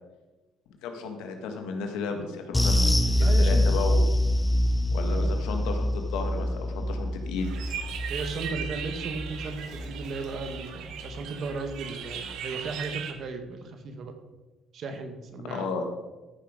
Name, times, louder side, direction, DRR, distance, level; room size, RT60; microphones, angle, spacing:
voice 1, 0.8-4.0 4.9-7.8 15.5-15.8, left 4 dB, 85° left, 4 dB, 1.8 m, -34 dB
sound 1, 2.5-11.2 11.5-11.7 12.1-12.2, left 1 dB, 10° left, 0.9 m, -26 dB
voice 2, 3.2-3.8 5.1-5.3 8.1-14.1 14.7-15.7, right 4 dB, 55° right, 7 dB, 1.7 m, -36 dB
sound 2, 7.4-13.1, right 8 dB, 70° right, 1.3 m, -38 dB
13.5 x 6.3 x 5.1 m, 1.2 s
cardioid pair, 95°, 0 cm